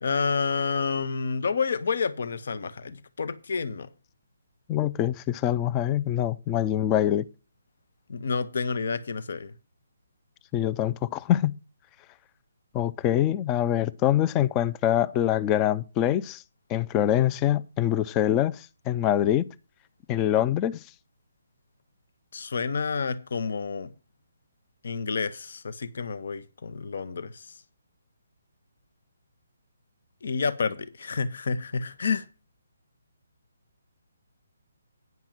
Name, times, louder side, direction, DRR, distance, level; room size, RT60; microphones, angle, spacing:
voice 1, 0.0-3.9 8.1-9.5 22.3-23.9 24.8-27.5 30.2-32.2, left 5 dB, 60° left, 0.9 m, -29 dB
voice 2, 4.7-7.3 10.5-11.5 12.7-16.4 16.7-19.5 20.1-20.8, left 11 dB, 20° left, 0.5 m, -24 dB
9.5 x 5.9 x 7.5 m
figure-of-eight pair, 140°, 0 cm